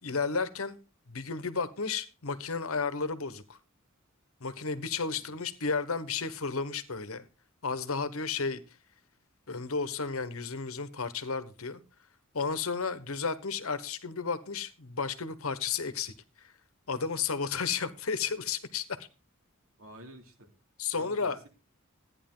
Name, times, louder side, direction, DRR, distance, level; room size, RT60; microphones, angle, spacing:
voice 1, 0.0-0.8 1.1-3.6 4.4-7.2 7.6-8.6 9.5-11.8 12.3-16.5 16.9-19.1 20.8-21.4, left 5 dB, 85° left, 13 dB, 1.2 m, -33 dB
voice 2, 19.8-20.5 21.0-21.5, equal, 90° right, 4 dB, 3.0 m, -48 dB
14.0 x 9.9 x 3.8 m, 0.31 s
head